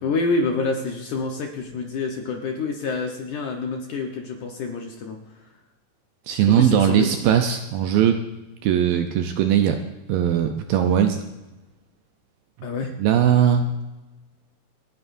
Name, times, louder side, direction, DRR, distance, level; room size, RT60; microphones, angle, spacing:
voice 1, 0.0-5.5 6.5-7.2 12.6-12.9, left 3 dB, 65° left, 2 dB, 2.1 m, -27 dB
voice 2, 6.3-8.2 8.6-9.8 10.1-11.2 13.0-13.7, right 9 dB, 75° right, 6 dB, 2.2 m, -19 dB
29.0 x 9.8 x 2.6 m, 1.1 s
omnidirectional pair, 4.7 m